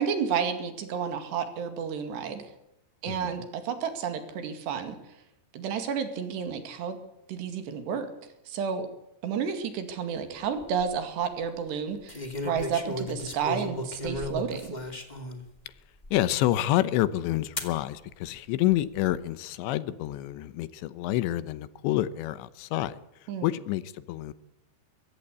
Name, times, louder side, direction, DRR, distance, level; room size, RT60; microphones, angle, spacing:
voice 1, 0.0-2.5 3.0-5.0 5.5-7.0 7.3-8.1 8.5-8.9 9.2-14.7 23.3-23.5, right 7 dB, 75° right, 4.3 m, -31 dB
voice 2, 3.1-3.5 16.1-24.3, left 14 dB, 85° left, 3.3 m, -28 dB
sound 1, 10.4-10.8 12.1-15.4 16.0-16.1 17.6-17.8 18.7-19.1, left 1 dB, 20° left, 1.2 m, -35 dB
23.0 x 16.5 x 8.4 m
omnidirectional pair, 5.1 m